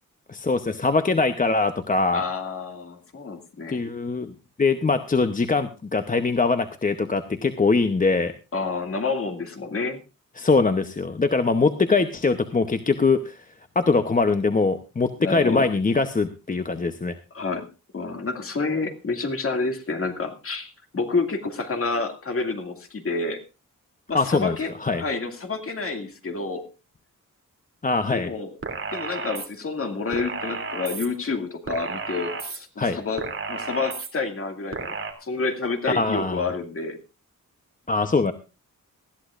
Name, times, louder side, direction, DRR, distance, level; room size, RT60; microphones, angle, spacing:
voice 1, 0.3-2.2 3.7-8.3 10.4-13.4 13.8-17.2 24.1-25.0 27.8-28.3 32.8-33.0 35.9-36.4 37.9-38.3, left 3 dB, 25° left, 8 dB, 0.8 m, -22 dB
voice 2, 2.1-3.8 8.5-10.0 15.2-15.7 17.3-17.7 17.9-23.4 24.1-26.7 28.1-28.5 28.9-37.0, left 4 dB, 45° left, 5 dB, 2.3 m, -29 dB
sound 1, 28.6-29.5 30.1-31.1 31.7-32.6 33.2-34.1 34.7-35.1, right 4 dB, 40° right, 3.0 m, -32 dB
20.0 x 13.5 x 2.5 m, 0.30 s
wide cardioid pair, 135°, 32 cm